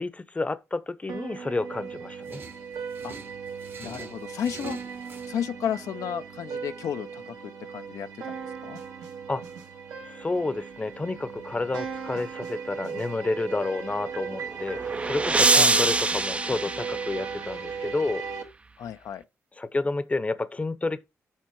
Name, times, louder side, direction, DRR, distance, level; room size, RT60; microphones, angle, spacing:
voice 1, 0.0-2.4 9.3-9.4 10.1-18.2 19.6-21.0, left 3 dB, 25° left, 0.7 m, -30 dB
sound 1, 1.1-18.4, right 6 dB, 90° right, 1.5 m, -37 dB
sound 2, 2.3-5.3, right 4 dB, 40° right, 0.9 m, -45 dB
voice 2, 3.8-4.8 5.3-8.4 8.6-8.8 15.5-15.8 18.8-19.2, left 9 dB, 85° left, 0.4 m, -33 dB
sound 3, 14.3-17.7, right 3 dB, 20° right, 0.3 m, -25 dB
7.4 x 4.4 x 4.6 m
cardioid pair, 80°, 6 cm